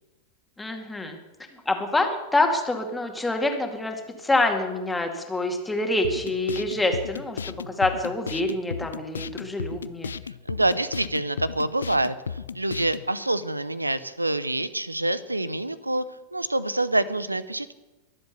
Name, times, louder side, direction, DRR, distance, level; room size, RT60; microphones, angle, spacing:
voice 1, 0.6-1.2 1.7-10.1, left 2 dB, 10° left, 4 dB, 2.2 m, -26 dB
sound 1, 6.0-13.1, left 6 dB, 70° left, 0.4 m, -35 dB
voice 2, 10.5-16.0 16.3-17.7, right 2 dB, 85° right, 16 dB, 0.7 m, -26 dB
22.5 x 7.8 x 6.8 m, 1.1 s
figure-of-eight pair, 90°, 0 cm